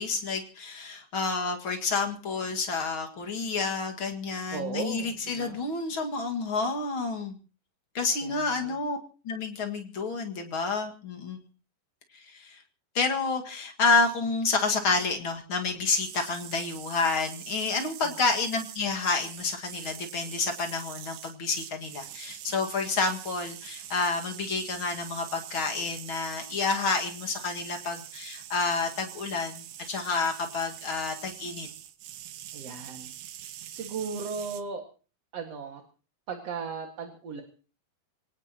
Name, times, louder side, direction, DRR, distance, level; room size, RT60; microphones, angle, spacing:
voice 1, 0.0-7.3 7.9-9.0 9.2-11.4 12.1-12.6 12.9-31.7, left 4 dB, 40° left, 3 dB, 2.0 m, -29 dB
voice 2, 4.5-5.6 8.2-8.8 18.0-18.1 32.5-33.1 33.7-34.8 35.3-35.8 36.3-37.4, right 5 dB, 45° right, 3 dB, 2.4 m, -36 dB
sound 1, 15.9-34.6, right 12 dB, 75° right, 3.1 m, -44 dB
25.5 x 18.5 x 3.0 m, 0.38 s
omnidirectional pair, 4.7 m